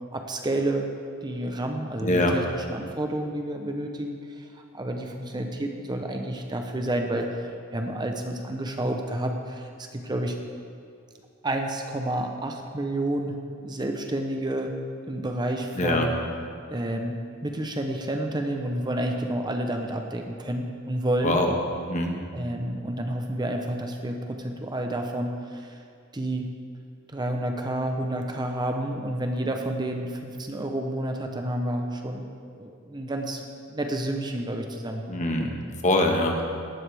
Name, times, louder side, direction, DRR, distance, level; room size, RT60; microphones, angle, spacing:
voice 1, 0.1-0.9 1.2-10.4 11.4-14.7 15.1-16.2 16.7-21.5 22.3-25.8 26.1-26.6 27.1-32.3 32.5-33.4 33.7-35.1, right 1 dB, 20° right, 3 dB, 0.8 m, -30 dB
voice 2, 2.0-2.4 15.8-16.1 21.2-22.2 35.1-35.5 35.8-36.4, left 1 dB, 35° left, 2 dB, 1.3 m, -23 dB
17.5 x 12.0 x 3.5 m, 2.3 s
head